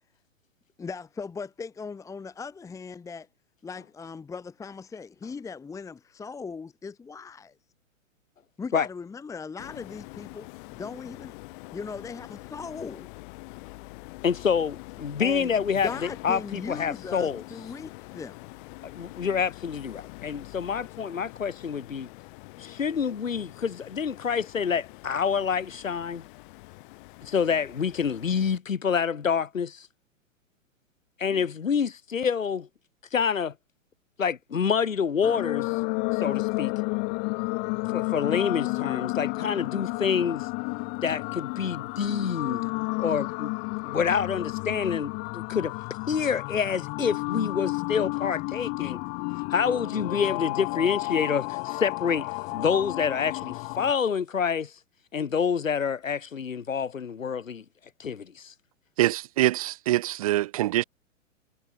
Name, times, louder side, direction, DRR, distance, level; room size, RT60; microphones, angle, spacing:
voice 1, 0.8-3.3 3.6-7.5 8.6-11.3 11.7-13.1 15.2-15.5 15.8-18.4 31.3-31.5, left 5 dB, 10° left, 1.2 m, -38 dB
sound 1, 9.6-28.6, left 25 dB, 40° left, 5.7 m, -45 dB
voice 2, 14.2-15.9 16.2-17.4 18.8-22.1 22.6-26.2 27.2-29.9 31.2-32.7 33.1-33.5 34.2-35.8 36.1-36.7 37.9-40.5 41.0-42.7 43.0-43.5 43.8-45.7 46.1-49.0 49.5-54.7 55.1-57.6 58.0-58.5, left 6 dB, 80° left, 1.3 m, -27 dB
sound 2, 35.2-53.9, left 34 dB, 25° left, 0.7 m, -31 dB
voice 3, 59.0-60.8, right 15 dB, 30° right, 0.4 m, -24 dB
figure-of-eight pair, 110°, 39 cm